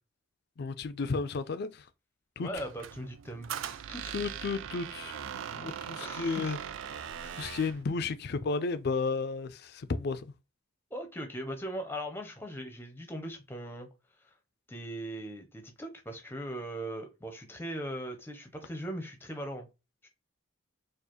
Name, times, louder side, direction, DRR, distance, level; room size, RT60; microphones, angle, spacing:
voice 1, 0.6-1.8 2.4-2.5 4.1-5.2 5.5-6.6 7.4-10.3, left 4 dB, 50° left, 0.4 m, -33 dB
voice 2, 2.4-3.5 3.9-4.2 6.0-6.5 7.2-7.4 10.9-13.9 14.7-19.7 20.0-20.1, equal, 10° left, 0.6 m, -39 dB
Squeak, 2.5-7.8, right 8 dB, 70° right, 0.3 m, -40 dB
4.5 x 2.5 x 2.9 m
head